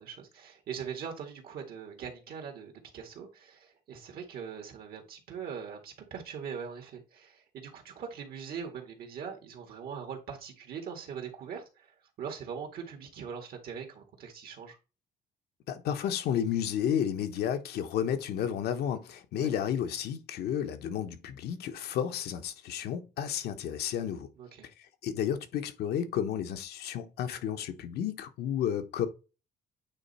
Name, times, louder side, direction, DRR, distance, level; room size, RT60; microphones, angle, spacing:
voice 1, 0.0-11.9 12.2-14.8 19.4-19.5 24.4-24.7, right 7 dB, 60° right, 1.9 m, -41 dB
voice 2, 15.7-24.3 24.8-29.1, left 9 dB, 70° left, 1.1 m, -32 dB
8.9 x 3.2 x 4.2 m
cardioid pair, 110°, 17 cm